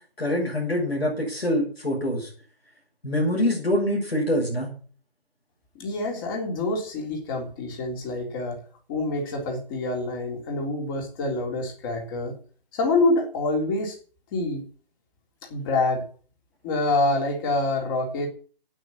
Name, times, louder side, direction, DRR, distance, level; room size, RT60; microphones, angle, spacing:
voice 1, 0.2-2.3 3.0-4.7, left 1 dB, 90° left, -2 dB, 7.2 m, -25 dB
voice 2, 5.8-8.6 8.9-12.3 12.7-14.0 14.3-14.6 15.5-16.0 16.6-18.3, left 2 dB, 20° left, 1 dB, 3.6 m, -26 dB
9.4 x 9.0 x 8.7 m, 0.42 s
figure-of-eight pair, 150°, 30 cm